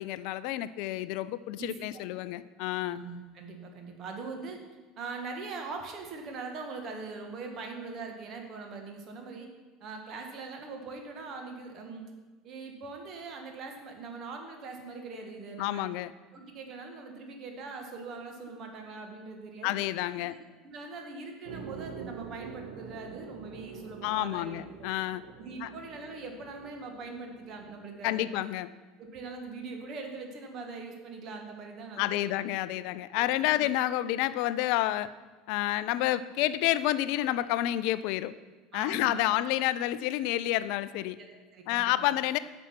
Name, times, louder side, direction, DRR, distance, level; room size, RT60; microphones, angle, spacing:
voice 1, 0.0-3.0 15.6-16.1 19.6-20.3 24.0-25.2 25.6-25.7 28.0-28.7 32.0-35.1 35.5-38.3 38.7-41.2 41.7-42.4, left 14 dB, 55° left, 15 dB, 0.3 m, -29 dB
voice 2, 1.6-1.9 2.7-4.6 5.0-9.5 9.8-12.0 12.4-15.9 16.3-19.7 20.2-24.9 25.4-28.4 29.0-32.4 32.7-32.9 33.1-33.6 38.7-39.4 41.2-41.9, right 4 dB, 45° right, 3 dB, 1.5 m, -42 dB
sound 1, 21.4-27.7, right 5 dB, 65° right, 1.2 m, -46 dB
9.8 x 6.1 x 5.9 m, 1.3 s
figure-of-eight pair, 70°, 0 cm